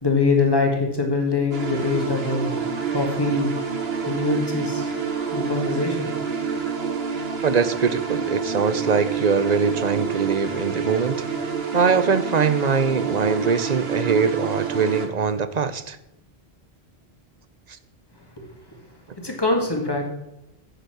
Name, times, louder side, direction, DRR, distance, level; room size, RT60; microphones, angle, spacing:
voice 1, 0.0-2.5 2.9-3.5 4.1-4.9 5.3-6.1 19.2-20.1, left 3 dB, 20° left, 2 dB, 2.0 m, -23 dB
sound 1, 1.5-15.1, right 6 dB, 70° right, 1.5 m, -28 dB
voice 2, 7.4-11.2 11.7-16.0, right 5 dB, 45° right, 13 dB, 0.7 m, -22 dB
8.2 x 8.2 x 6.0 m, 0.91 s
omnidirectional pair, 1.1 m